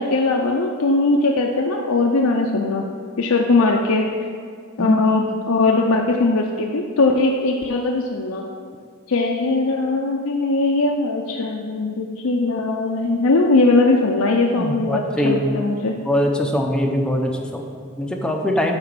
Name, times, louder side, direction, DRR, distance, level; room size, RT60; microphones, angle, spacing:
voice 1, 0.0-2.9 3.2-4.3 4.8-8.4 9.1-15.9, left 3 dB, 75° left, 1 dB, 0.6 m, -20 dB
voice 2, 14.6-15.4 16.1-18.7, equal, 5° left, 1 dB, 0.6 m, -22 dB
8.7 x 4.1 x 6.0 m, 2.1 s
head